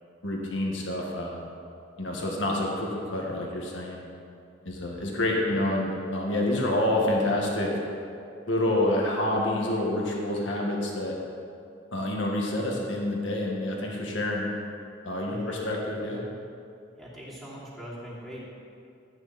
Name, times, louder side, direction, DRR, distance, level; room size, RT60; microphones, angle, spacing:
voice 1, 0.2-1.4 2.0-4.0 4.7-7.7 8.5-11.2 11.9-14.5 15.0-16.2, left 1 dB, 70° left, -2 dB, 1.9 m, -28 dB
voice 2, 15.2-15.7 17.0-18.4, equal, ahead, -8 dB, 2.9 m, -41 dB
14.0 x 9.3 x 4.4 m, 2.5 s
head